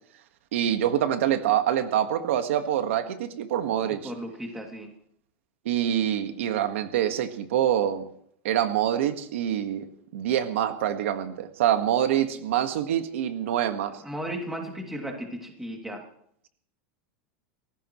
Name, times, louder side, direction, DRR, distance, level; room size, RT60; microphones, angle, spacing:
voice 1, 0.5-4.1 5.6-8.0 8.4-9.9 10.1-14.0, right 10 dB, 75° right, 7 dB, 1.6 m, -25 dB
voice 2, 3.9-4.9 14.0-16.0, equal, 5° right, 1 dB, 2.7 m, -35 dB
30.0 x 15.5 x 3.2 m, 0.67 s
supercardioid pair, 165°, 7 cm